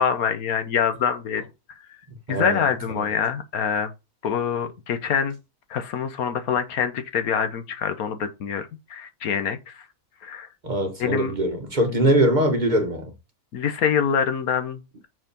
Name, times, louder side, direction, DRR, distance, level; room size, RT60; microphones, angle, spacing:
voice 1, 0.0-1.4 2.3-3.9 4.2-5.4 5.7-9.8 10.2-10.5 11.0-11.3 11.9-12.0 13.5-15.1, left 7 dB, 75° left, 1.4 m, -25 dB
voice 2, 2.3-2.6 10.6-13.1, right 1 dB, 35° right, 1.1 m, -22 dB
6.2 x 4.8 x 5.3 m
omnidirectional pair, 1.5 m